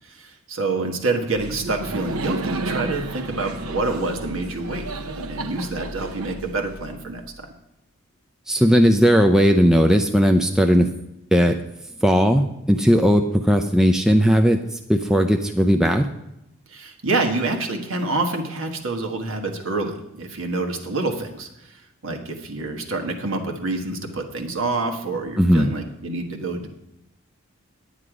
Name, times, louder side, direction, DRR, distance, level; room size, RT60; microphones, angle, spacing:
voice 1, 0.1-4.8 5.3-7.5 16.7-26.7, right 3 dB, 65° right, 2 dB, 1.5 m, -27 dB
Laughter, 1.4-7.2, right 2 dB, 80° right, 0.8 m, -32 dB
voice 2, 8.5-10.9 11.3-11.6 12.0-14.6 14.9-16.1 25.4-25.7, equal, 5° right, 4 dB, 0.4 m, -17 dB
9.7 x 9.5 x 4.9 m, 0.87 s
head